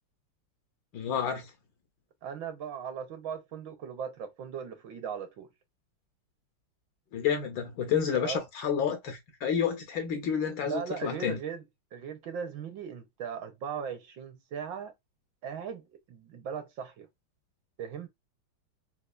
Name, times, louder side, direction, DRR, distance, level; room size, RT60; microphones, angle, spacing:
voice 1, 0.9-1.5 7.1-11.4, left 7 dB, 70° left, 1.3 m, -30 dB
voice 2, 2.2-5.5 8.1-8.4 10.5-11.6 11.9-14.9 15.4-17.1 17.8-18.1, right 7 dB, 70° right, 1.2 m, -38 dB
4.2 x 2.3 x 2.3 m
omnidirectional pair, 2.4 m